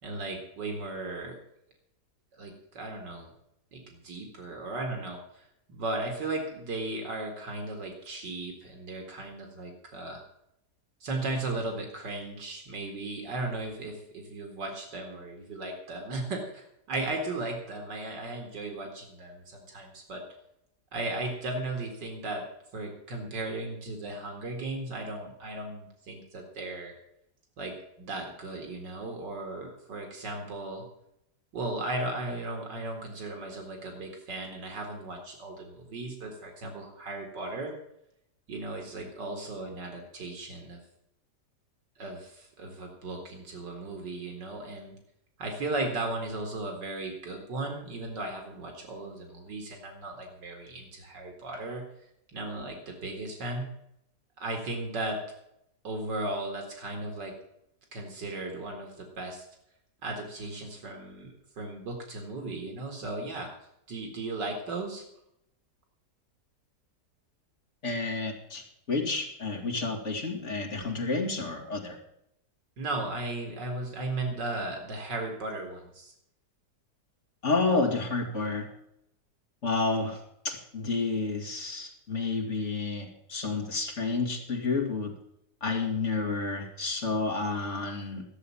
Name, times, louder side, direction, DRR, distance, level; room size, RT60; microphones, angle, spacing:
voice 1, 0.0-1.4 2.3-3.3 3.7-5.2 5.7-10.2 11.0-20.2 20.9-22.4 22.7-26.9 27.6-30.8 31.5-37.7 38.5-40.8 42.0-45.0 45.4-51.8 52.3-53.7 54.4-55.2 55.8-57.3 57.9-59.4 60.0-63.5 63.9-65.0 72.8-76.1, right 2 dB, 80° right, 3 dB, 2.7 m, -36 dB
voice 2, 67.8-72.0 77.4-78.7 79.6-80.2 80.4-85.1 85.6-88.2, left 3 dB, 40° left, 1 dB, 2.6 m, -30 dB
13.5 x 7.4 x 7.1 m, 0.77 s
omnidirectional pair, 1.9 m